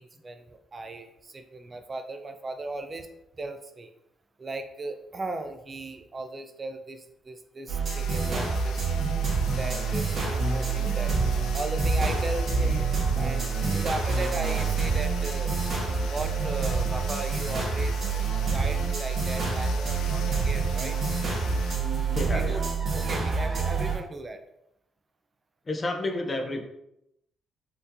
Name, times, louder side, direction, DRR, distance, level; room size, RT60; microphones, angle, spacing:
voice 1, 0.0-3.1 3.4-3.9 4.4-8.9 9.5-11.2 11.5-15.5 16.1-18.2 18.5-21.0 22.3-22.6 22.9-24.4, right 2 dB, 30° right, 7 dB, 0.3 m, -37 dB
sound 1, 7.7-24.0, right 4 dB, 50° right, 1.2 m, -27 dB
sound 2, 7.8-21.8, left 6 dB, 80° left, 0.4 m, -43 dB
voice 2, 22.1-22.7 25.7-26.6, left 2 dB, 30° left, 4 dB, 0.6 m, -30 dB
4.4 x 2.7 x 2.6 m, 0.82 s
cardioid pair, 90°, 0 cm